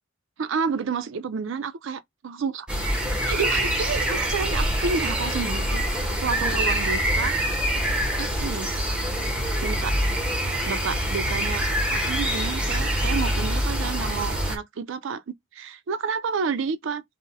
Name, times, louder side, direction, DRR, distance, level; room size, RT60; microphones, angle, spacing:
voice 1, 0.4-2.7 3.2-5.8 6.2-7.3 8.2-8.7 9.6-10.0 10.7-17.0, right 5 dB, 65° right, 0.4 m, -30 dB
sound 1, 2.7-14.6, equal, 5° right, 0.6 m, -25 dB
2.6 x 2.0 x 3.7 m
head